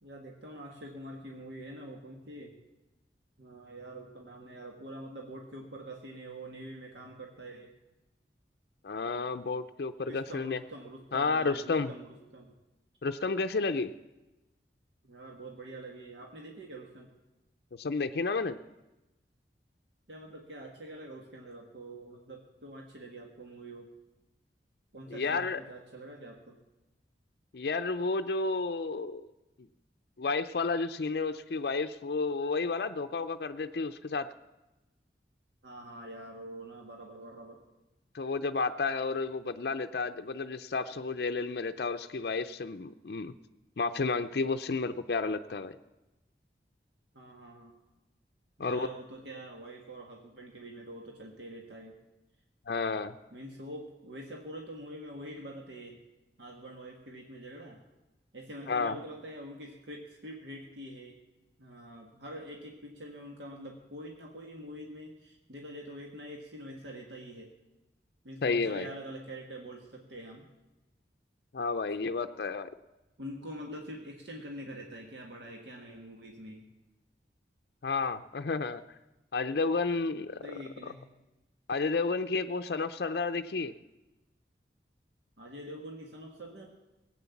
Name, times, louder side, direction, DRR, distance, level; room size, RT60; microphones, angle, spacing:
voice 1, 0.0-2.6 3.4-7.7 10.1-12.5 15.0-17.1 20.1-23.9 24.9-26.6 35.6-37.6 47.1-47.7 48.6-52.0 53.3-56.0 56.4-57.8 58.3-61.2 61.6-67.5 68.2-70.5 73.2-76.6 80.4-81.0 85.4-86.7, right 1 dB, 85° right, 0 dB, 1.7 m, -45 dB
voice 2, 8.8-10.6 11.1-11.9 13.0-13.9 17.8-18.6 25.1-25.6 27.5-29.3 30.2-34.3 38.1-43.3 43.8-45.8 48.6-48.9 52.7-53.1 58.7-59.0 68.4-68.9 71.5-72.7 77.8-78.8 79.3-80.6 81.7-83.7, left 4 dB, 60° left, 8 dB, 0.5 m, -31 dB
18.5 x 8.6 x 7.1 m, 1.0 s
head